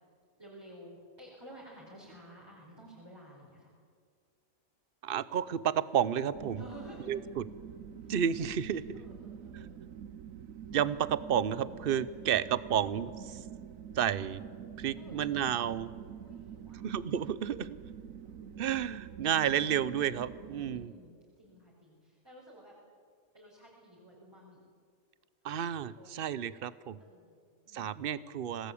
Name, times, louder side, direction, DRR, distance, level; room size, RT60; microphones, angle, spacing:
voice 1, 0.4-3.7 6.6-7.1 8.0-8.1 8.9-9.8 14.1-14.3 15.0-15.2 16.2-16.8 18.2-18.7 20.7-22.7 23.3-24.6 25.9-26.1 27.0-28.1, right 1 dB, 15° right, -5 dB, 5.2 m, -53 dB
voice 2, 5.0-6.6 7.1-7.5 8.1-9.0 9.5-9.7 10.7-13.4 14.0-14.4 14.8-15.9 16.8-17.8 18.6-20.9 25.4-27.0 27.7-28.7, right 9 dB, 45° right, 16 dB, 0.9 m, -31 dB
sound 1, 6.3-20.9, right 8 dB, 70° right, 1.2 m, -46 dB
26.0 x 19.0 x 8.6 m, 2.1 s
omnidirectional pair, 1.5 m